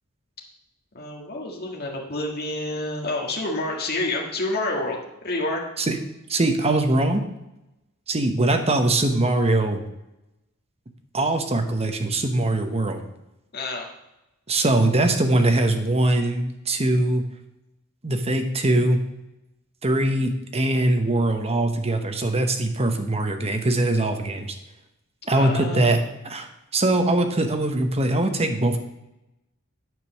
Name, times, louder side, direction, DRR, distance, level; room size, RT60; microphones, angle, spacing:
voice 1, 0.9-5.0 5.2-5.6 13.5-13.9 25.2-26.0, left 2 dB, 50° left, -1 dB, 1.8 m, -28 dB
voice 2, 6.3-7.2 8.1-9.8 11.1-13.0 14.5-17.2 18.0-19.0 19.8-24.5 25.3-26.0 26.2-28.8, right 2 dB, 30° right, 5 dB, 1.0 m, -22 dB
9.4 x 5.2 x 6.3 m, 0.91 s
head